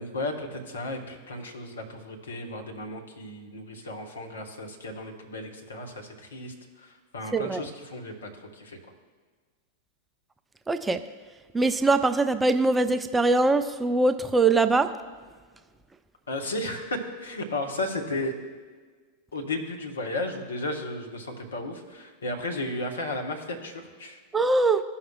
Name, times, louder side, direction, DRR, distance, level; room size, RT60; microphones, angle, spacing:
voice 1, 0.0-8.8 16.3-18.3 19.3-24.2, left 2 dB, 70° left, 2 dB, 1.1 m, -34 dB
voice 2, 7.3-7.7 10.7-11.0 11.5-14.9 24.3-24.8, right 3 dB, 10° right, 9 dB, 0.3 m, -22 dB
14.5 x 5.7 x 2.3 m, 1.5 s
figure-of-eight pair, 90°, 0 cm